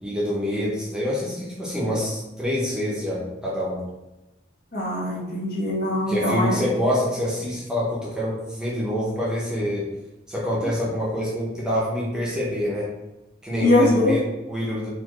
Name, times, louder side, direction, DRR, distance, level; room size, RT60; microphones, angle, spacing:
voice 1, 0.0-3.8 6.1-9.9 10.3-12.9 13.4-14.9, equal, 5° right, -6 dB, 0.8 m, -26 dB
voice 2, 4.7-6.6 13.6-14.2, left 1 dB, 55° left, -5 dB, 1.2 m, -21 dB
4.3 x 2.6 x 3.1 m, 1.0 s
head